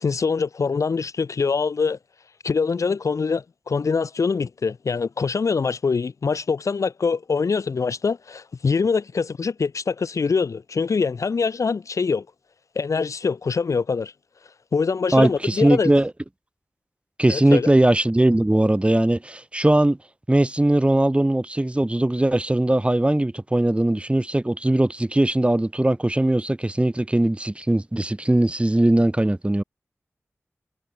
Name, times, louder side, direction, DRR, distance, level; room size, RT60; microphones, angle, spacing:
voice 1, 0.0-2.0 2.4-12.3 12.8-14.1 14.7-15.9 17.3-17.7, left 5 dB, 85° left, 7.1 m, -24 dB
voice 2, 15.1-16.1 17.2-20.0 20.3-29.6, right 1 dB, 20° right, 7.2 m, -20 dB
wide cardioid pair, 60°, 5 cm